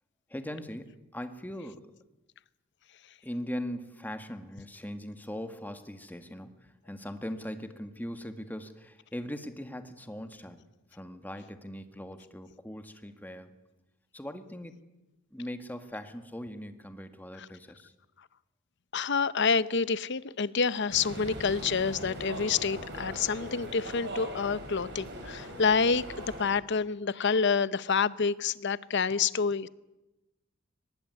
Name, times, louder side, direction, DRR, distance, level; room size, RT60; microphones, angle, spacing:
voice 1, 0.3-1.9 3.2-10.6 10.9-13.5 14.1-14.9 15.3-17.9, equal, 10° left, 8 dB, 1.8 m, -40 dB
voice 2, 18.9-29.7, left 5 dB, 55° left, 17 dB, 0.8 m, -28 dB
sound 1, 20.9-26.4, right 1 dB, 55° right, 6.7 m, -40 dB
23.5 x 20.0 x 9.6 m, 1.0 s
head